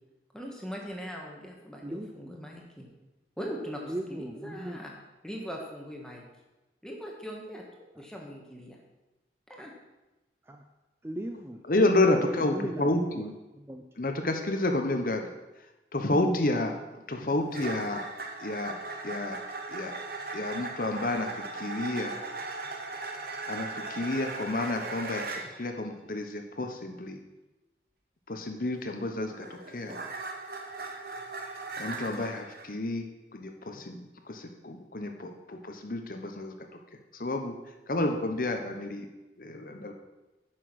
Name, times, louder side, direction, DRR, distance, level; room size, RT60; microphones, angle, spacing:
voice 1, 0.3-2.9 3.4-3.8 4.1-4.9 5.2-6.2 6.8-7.6 8.0-8.8 9.5-9.7, equal, 5° left, -1 dB, 1.5 m, -40 dB
voice 2, 1.8-2.2 3.8-4.8 10.4-10.6 11.0-11.6 12.1-13.8, right 1 dB, 15° right, 4 dB, 0.4 m, -38 dB
voice 3, 11.7-13.3 14.0-15.3 15.9-18.0 18.4-18.7 19.0-19.4 19.7-19.9 20.3-22.2 23.5-27.2 28.3-30.0 31.8-33.0 33.3-34.0 34.3-36.5 37.1-37.6 37.9-39.1 39.4-39.9, left 2 dB, 50° left, 5 dB, 0.9 m, -30 dB
sound 1, 17.5-25.5 28.9-32.7, right 3 dB, 55° right, 1.1 m, -38 dB
9.4 x 6.2 x 6.1 m, 1.1 s
head